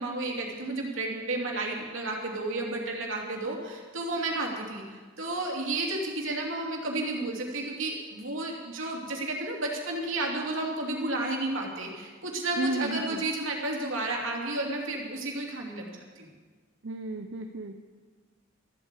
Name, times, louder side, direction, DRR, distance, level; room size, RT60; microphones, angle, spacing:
voice 1, 0.0-16.3, right 2 dB, 90° right, -1 dB, 2.9 m, -32 dB
voice 2, 12.6-13.2 16.8-17.8, right 2 dB, 70° right, 5 dB, 0.7 m, -33 dB
14.0 x 8.3 x 8.3 m, 1.4 s
head